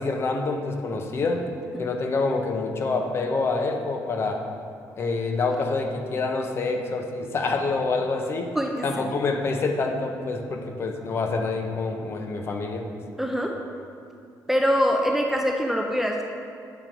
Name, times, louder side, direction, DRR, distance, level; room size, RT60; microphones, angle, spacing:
voice 1, 0.0-1.4 1.8-4.4 5.0-8.5 8.8-12.8, left 3 dB, 40° left, 4 dB, 0.7 m, -27 dB
voice 2, 8.6-9.2 13.2-13.5 14.5-16.2, equal, 5° right, 1 dB, 0.4 m, -24 dB
8.1 x 5.0 x 4.5 m, 2.5 s
cardioid pair, 160°, 7 cm